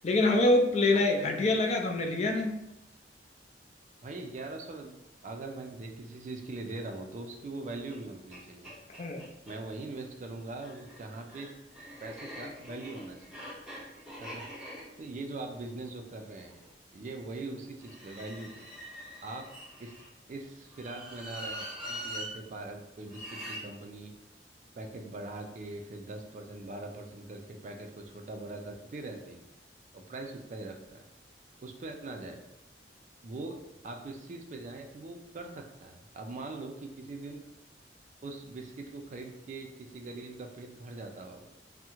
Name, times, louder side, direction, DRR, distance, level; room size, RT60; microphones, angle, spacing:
voice 1, 0.0-2.5 9.0-9.3, left 2 dB, 40° left, 3 dB, 0.3 m, -25 dB
voice 2, 0.9-1.5 4.0-8.7 9.5-11.5 12.0-13.2 14.2-14.4 15.0-16.6 16.9-18.6 19.2-19.5 19.8-20.0 20.3-24.1 24.8-29.4 29.9-31.0 31.6-32.4 33.2-33.6 33.8-37.4 38.2-41.5, right 2 dB, 45° right, 4 dB, 0.3 m, -42 dB
sound 1, 7.9-8.0 8.3-8.4 8.6-9.6 10.5-16.6 17.8-20.1 20.7-22.3 23.1-23.6, equal, 5° right, 0.7 m, -44 dB
3.5 x 2.1 x 2.9 m, 0.91 s
head